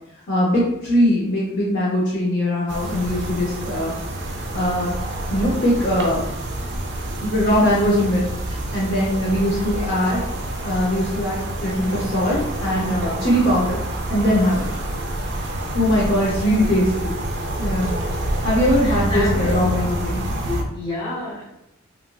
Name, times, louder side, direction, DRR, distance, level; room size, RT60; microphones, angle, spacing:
voice 1, 0.3-3.9 4.5-5.0 5.3-6.2 7.2-8.2 8.7-10.2 10.6-13.8 14.1-14.6 15.7-17.2 17.6-18.0 18.4-20.2, equal, 55° left, -6 dB, 0.6 m, -21 dB
sound 1, 2.7-20.6, right 1 dB, 60° right, 0.4 m, -27 dB
voice 2, 16.4-16.9 18.8-19.5 20.4-21.4, left 2 dB, 25° left, -6 dB, 1.0 m, -30 dB
2.9 x 2.5 x 2.2 m, 0.87 s
head